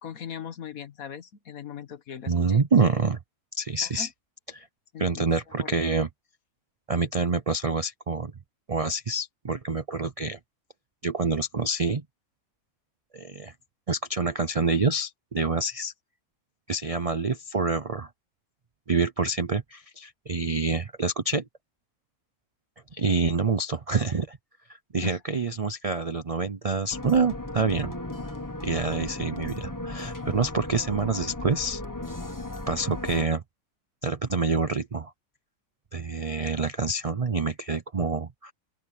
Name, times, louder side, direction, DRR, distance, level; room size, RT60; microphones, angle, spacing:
voice 1, 0.0-2.6 3.8-4.1 4.9-5.2 5.6-5.8 25.0-25.2, left 8 dB, 65° left, 1.6 m, -39 dB
voice 2, 2.3-3.2 3.6-4.1 4.5-4.7 5.0-6.1 6.9-8.3 8.7-10.4 11.0-12.0 13.1-13.5 13.9-15.9 16.7-18.1 18.9-21.5 22.9-24.4 24.9-27.9 28.6-31.8 32.7-33.4 34.0-35.1 35.9-38.5, right 4 dB, 55° right, 0.4 m, -27 dB
sound 1, 26.9-33.2, left 2 dB, 15° left, 1.3 m, -36 dB
open air
omnidirectional pair, 1.7 m